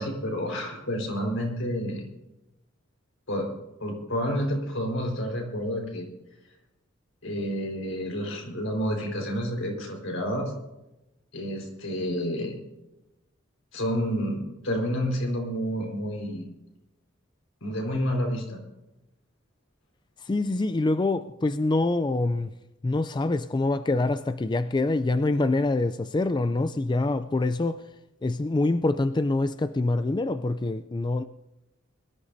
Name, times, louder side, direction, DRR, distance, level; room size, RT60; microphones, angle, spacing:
voice 1, 0.0-2.1 3.3-3.5 3.8-6.1 7.2-10.5 11.3-12.6 13.7-16.5 17.6-18.6, equal, 80° left, 4.7 m, -29 dB
voice 2, 20.2-22.6 22.8-27.9 28.2-31.2, left 2 dB, 20° left, 0.4 m, -25 dB
23.0 x 13.5 x 2.7 m
head